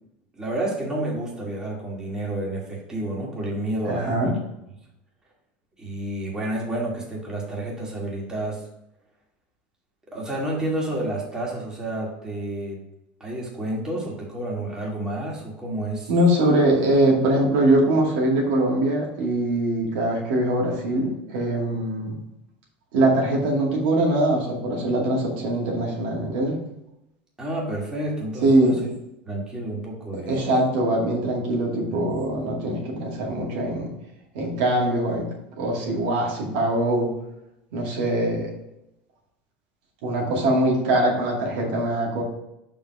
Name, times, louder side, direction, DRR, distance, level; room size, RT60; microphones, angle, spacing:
voice 1, 0.4-4.3 5.8-8.6 10.1-12.8 13.2-16.1 27.4-28.9 29.3-30.4 31.9-32.0, right 1 dB, 15° right, -3 dB, 2.2 m, -30 dB
voice 2, 3.8-4.3 16.1-22.1 22.9-26.6 28.4-28.8 30.1-33.9 34.3-35.3 35.6-37.1 37.7-38.5 40.0-42.2, right 1 dB, 75° right, -2 dB, 2.3 m, -22 dB
5.4 x 4.7 x 5.5 m, 0.84 s
supercardioid pair, 120°, 5 cm